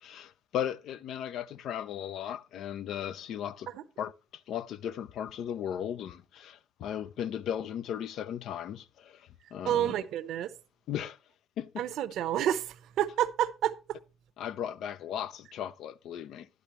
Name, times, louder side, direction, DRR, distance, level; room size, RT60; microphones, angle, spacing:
voice 1, 0.0-3.7 4.0-9.9 10.9-11.2 11.6-11.9 14.4-16.5, left 9 dB, 70° left, 0.5 m, -36 dB
voice 2, 9.7-10.5 11.8-13.7, right 11 dB, 75° right, 0.7 m, -29 dB
11.0 x 10.5 x 3.0 m
cardioid pair, 100°, 0 cm